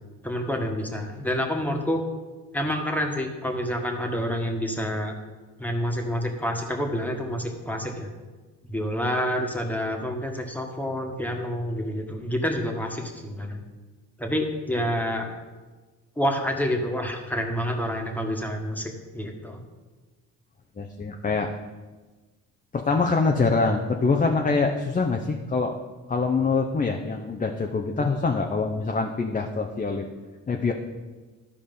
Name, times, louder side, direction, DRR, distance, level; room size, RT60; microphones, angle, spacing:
voice 1, 0.2-2.0 2.5-5.1 5.6-8.1 8.7-13.6 14.2-15.3 16.2-19.6, equal, 5° left, 2 dB, 1.6 m, -28 dB
voice 2, 20.8-21.5 22.7-25.8 26.1-30.1 30.5-30.7, left 4 dB, 20° left, 3 dB, 0.8 m, -24 dB
12.5 x 4.9 x 5.5 m, 1.3 s
supercardioid pair, 85°, 36 cm